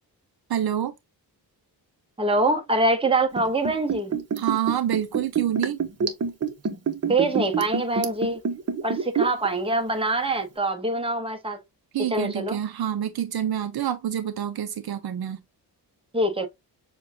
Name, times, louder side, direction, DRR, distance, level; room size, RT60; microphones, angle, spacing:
voice 1, 0.5-0.9 4.4-5.8 11.9-15.4, right 10 dB, 65° right, 0.6 m, -27 dB
voice 2, 2.2-4.2 7.0-8.4 8.8-11.6 12.1-12.6 16.1-16.5, right 2 dB, 15° right, 1.0 m, -24 dB
Liquid, 3.3-9.5 9.8-9.9, right 6 dB, 40° right, 0.9 m, -26 dB
6.7 x 2.4 x 2.7 m
cardioid pair, 110°, 41 cm